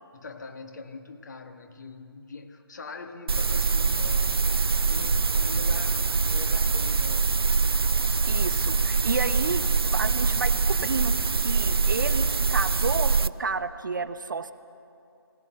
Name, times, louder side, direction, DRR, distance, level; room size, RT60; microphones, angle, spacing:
voice 1, 0.1-4.5 4.9-7.3, left 4 dB, 45° left, 7 dB, 1.4 m, -42 dB
sound 1, 3.3-13.3, right 4 dB, 65° right, 0.5 m, -24 dB
voice 2, 8.3-14.5, right 4 dB, 50° right, 10 dB, 0.9 m, -31 dB
20.0 x 18.0 x 8.1 m, 2.7 s
figure-of-eight pair, 150°, 13 cm